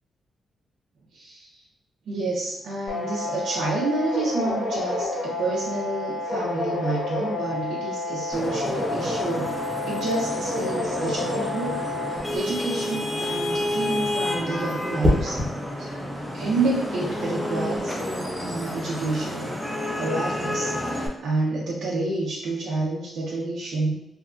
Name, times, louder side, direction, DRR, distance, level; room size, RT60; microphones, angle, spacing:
voice 1, 1.1-1.6 2.1-9.6 9.9-11.7 12.1-15.4 15.8-15.9 16.3-19.6 20.0-23.9, right 2 dB, 85° right, -5 dB, 0.5 m, -29 dB
sound 1, 2.9-12.2, left 2 dB, 85° left, 1.1 m, -29 dB
Vehicle horn car horn honking / Traffic noise roadway noise, 8.3-21.1, left 1 dB, 5° left, 0.3 m, -30 dB
sound 2, 15.0-15.6 17.5-17.8, left 1 dB, 15° right, 0.8 m, -24 dB
2.8 x 2.3 x 2.4 m, 0.79 s
wide cardioid pair, 160°, 0 cm